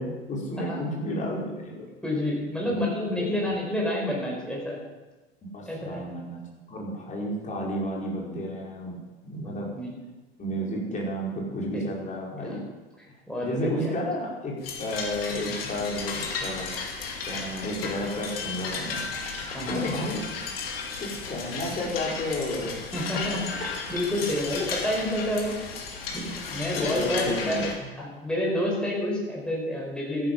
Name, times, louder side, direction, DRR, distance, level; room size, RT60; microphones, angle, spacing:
voice 1, 0.0-1.9 2.6-2.8 3.2-3.3 5.5-6.4 6.7-9.0 9.2-9.7 10.4-12.6 13.4-16.7 17.2-19.0 19.7-20.2 21.0-22.8 26.5-27.9, left 1 dB, 25° left, -3 dB, 4.7 m, -32 dB
voice 2, 2.0-4.8 5.7-6.0 9.4-10.0 10.8-11.0 11.7-11.9 12.4-12.6 13.3-13.9 19.4-19.9 22.9-25.6 26.1-30.3, left 1 dB, 5° left, -3 dB, 5.2 m, -29 dB
sound 1, 14.6-27.7, left 5 dB, 65° left, 2.4 m, -34 dB
13.5 x 11.0 x 5.5 m, 1.2 s
figure-of-eight pair, 80°, 31 cm